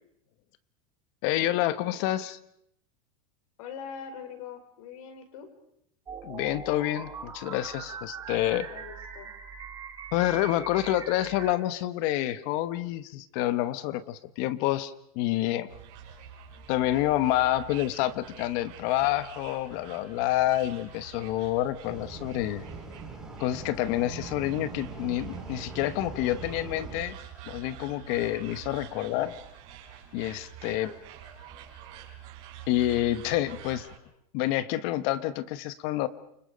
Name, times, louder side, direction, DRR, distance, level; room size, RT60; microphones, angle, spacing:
voice 1, 1.2-2.4 6.2-8.7 10.1-15.7 16.7-22.6 23.4-27.2 27.5-29.3 30.1-30.9 32.7-33.9 34.3-36.1, left 14 dB, 45° left, 14 dB, 1.1 m, -28 dB
voice 2, 3.6-5.5 8.6-9.3 30.6-31.0, left 7 dB, 70° left, 7 dB, 4.7 m, -43 dB
sound 1, 6.1-11.5, right 6 dB, 20° right, 2.6 m, -41 dB
sound 2, 15.7-34.0, right 9 dB, 50° right, 5.0 m, -47 dB
sound 3, 21.8-27.0, right 3 dB, 5° right, 5.3 m, -42 dB
29.5 x 25.5 x 5.1 m, 0.73 s
supercardioid pair, 160°, 19 cm